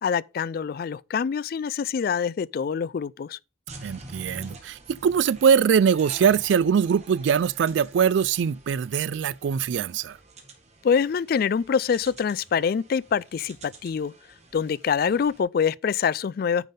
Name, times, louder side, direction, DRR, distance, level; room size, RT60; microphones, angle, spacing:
voice 1, 0.0-3.4 10.8-14.1 14.5-16.7, left 6 dB, 50° left, 0.3 m, -25 dB
sound 1, 3.7-15.4, right 2 dB, 35° right, 1.8 m, -48 dB
voice 2, 3.8-10.2, right 7 dB, 70° right, 0.3 m, -22 dB
9.2 x 5.5 x 3.7 m
head